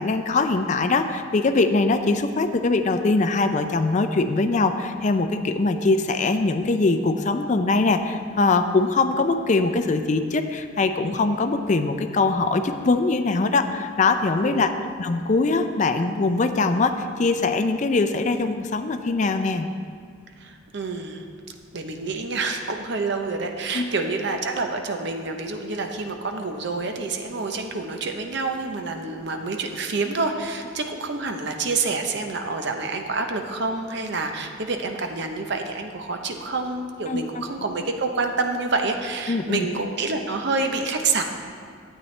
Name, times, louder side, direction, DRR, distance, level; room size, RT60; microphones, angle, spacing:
voice 1, 0.0-14.7 15.0-19.7 23.7-23.9 37.1-37.4 39.3-39.7, left 3 dB, 40° left, 8 dB, 0.4 m, -22 dB
voice 2, 20.4-21.2 21.7-41.2, right 3 dB, 60° right, 5 dB, 0.7 m, -27 dB
12.0 x 8.4 x 3.2 m, 2.1 s
head